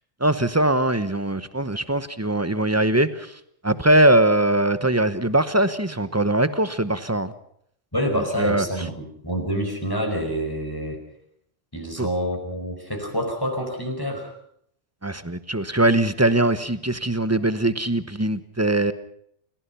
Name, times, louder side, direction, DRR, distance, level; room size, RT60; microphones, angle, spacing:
voice 1, 0.2-3.3 3.6-7.3 8.1-8.6 12.0-12.1 15.0-18.9, right 1 dB, 15° right, 13 dB, 0.9 m, -21 dB
voice 2, 7.9-11.0 11.7-14.3, equal, 15° left, 2 dB, 5.1 m, -27 dB
29.0 x 17.0 x 5.8 m, 0.70 s
omnidirectional pair, 1.3 m